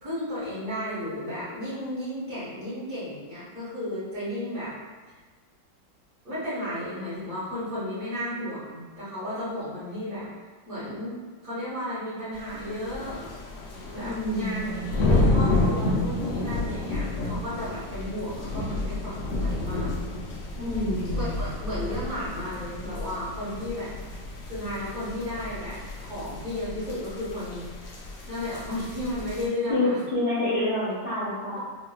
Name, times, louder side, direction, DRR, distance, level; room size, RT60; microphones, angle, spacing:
voice 1, 0.0-4.7 6.2-10.3 10.7-11.1 11.4-13.2 13.9-20.0 21.1-23.9 24.5-27.7 28.3-30.0, left 1 dB, 55° right, -11 dB, 1.8 m, -33 dB
sound 1, 12.4-29.5, left 2 dB, 90° left, 0.7 m, -30 dB
voice 2, 14.0-14.8 20.6-21.3 29.7-31.6, left 1 dB, 45° left, -12 dB, 0.9 m, -27 dB
3.7 x 2.5 x 2.2 m, 1.4 s
omnidirectional pair, 2.0 m